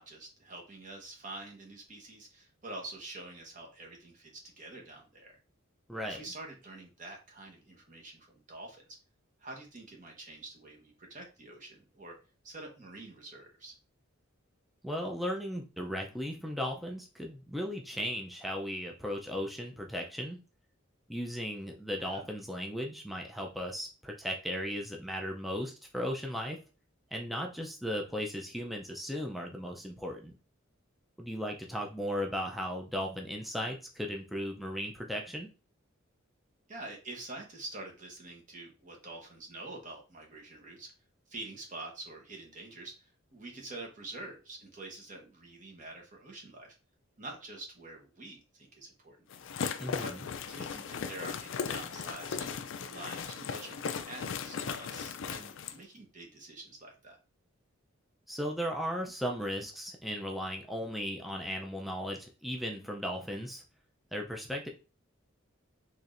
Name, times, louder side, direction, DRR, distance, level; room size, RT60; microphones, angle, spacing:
voice 1, 0.0-5.4 6.0-8.8 9.4-12.2 12.4-13.7 22.0-22.3 36.7-40.9 41.3-42.9 43.3-46.7 47.2-49.2 50.0-50.1 50.5-57.2, right 2 dB, 40° right, 1 dB, 1.0 m, -46 dB
voice 2, 5.9-6.2 14.8-20.4 21.1-26.6 27.1-30.3 31.2-35.5 49.8-50.3 58.3-63.6 64.1-64.7, equal, ahead, 0 dB, 0.4 m, -36 dB
sound 1, 49.3-55.8, left 6 dB, 60° left, 0.4 m, -37 dB
4.3 x 3.1 x 2.5 m, 0.32 s
head